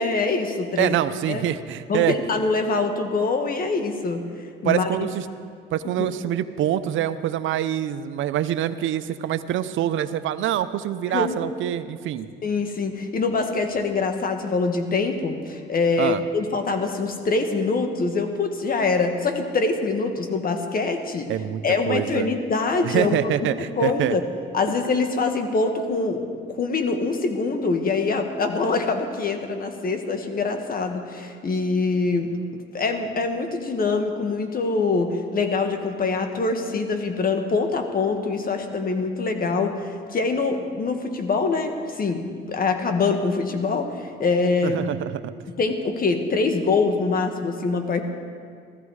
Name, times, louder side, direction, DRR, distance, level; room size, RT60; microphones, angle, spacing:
voice 1, 0.0-1.0 1.3-1.4 1.9-4.2 4.6-4.9 6.0-6.1 11.1-11.4 12.4-21.3 21.6-23.5 23.8-24.2 24.5-32.3 32.7-44.8 45.6-48.0, left 4 dB, 45° left, 6 dB, 1.6 m, -24 dB
voice 2, 0.8-2.1 4.6-5.3 5.7-12.3 16.0-16.2 21.3-22.3 22.8-24.1 44.6-45.1, right 11 dB, 80° right, 13 dB, 0.6 m, -25 dB
16.0 x 14.0 x 4.8 m, 2.2 s
cardioid pair, 90°, 20 cm